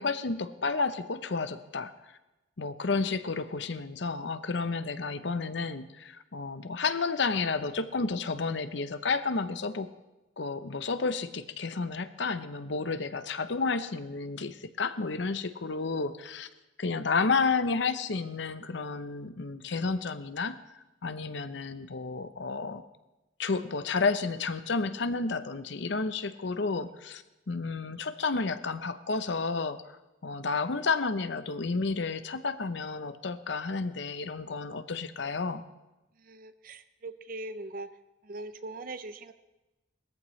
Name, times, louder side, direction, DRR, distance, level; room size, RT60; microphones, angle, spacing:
voice 1, 0.0-1.9 2.6-9.9 10.4-16.5 16.8-20.6 21.0-22.8 23.4-29.8 30.2-35.6, left 4 dB, 65° left, 12 dB, 0.7 m, -31 dB
voice 2, 36.2-37.9 38.2-39.3, right 2 dB, 45° right, 11 dB, 0.5 m, -41 dB
19.5 x 14.0 x 3.2 m, 1.0 s
head